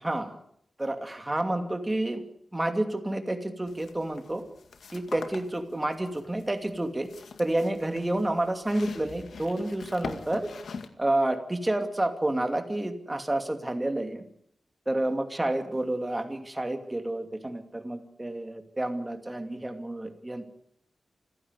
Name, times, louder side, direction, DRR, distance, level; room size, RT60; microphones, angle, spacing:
voice 1, 0.0-0.4 0.8-2.2 2.5-4.4 4.9-7.1 7.4-10.5 11.0-14.2 14.9-20.4, right 1 dB, 15° right, 6 dB, 2.6 m, -29 dB
sound 1, 3.7-10.9, left 5 dB, 90° left, 2.1 m, -43 dB
26.5 x 16.0 x 8.3 m, 0.72 s
wide cardioid pair, 135°, 0 cm